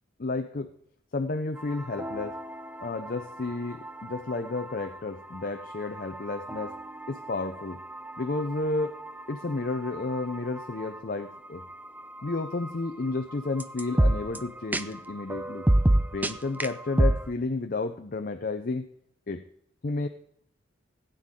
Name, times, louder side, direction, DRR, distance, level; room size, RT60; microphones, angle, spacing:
voice 1, 0.2-0.7 1.1-2.4 2.8-6.7 7.1-7.8 8.2-8.9 9.3-11.6 12.2-15.7 16.1-18.9 19.3-19.4 19.8-20.1, left 3 dB, 45° left, 8 dB, 0.6 m, -31 dB
sound 1, 1.6-17.3, right 1 dB, 10° right, 0.4 m, -31 dB
16.5 x 9.2 x 3.7 m, 0.73 s
head